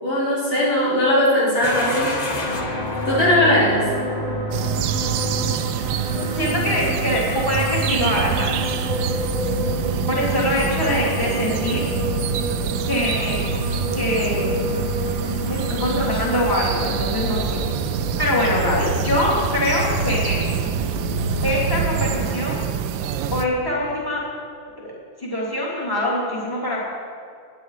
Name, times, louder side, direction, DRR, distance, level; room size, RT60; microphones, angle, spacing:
voice 1, 0.0-2.1 3.1-3.8, left 1 dB, 80° left, -9 dB, 5.1 m, -19 dB
sound 1, 1.6-12.4, left 2 dB, 30° left, 0.8 m, -34 dB
sound 2, 2.4-22.3, equal, 65° left, 3.7 m, -28 dB
sound 3, 4.5-23.5, right 9 dB, 80° right, 1.4 m, -27 dB
voice 2, 6.4-8.6 10.1-11.9 12.9-13.4 13.9-14.5 15.5-17.6 18.2-20.4 21.4-22.6 23.3-24.2 24.8-24.9 25.2-26.8, left 1 dB, 10° left, -6 dB, 3.0 m, -23 dB
19.0 x 9.4 x 4.9 m, 2.4 s
omnidirectional pair, 2.2 m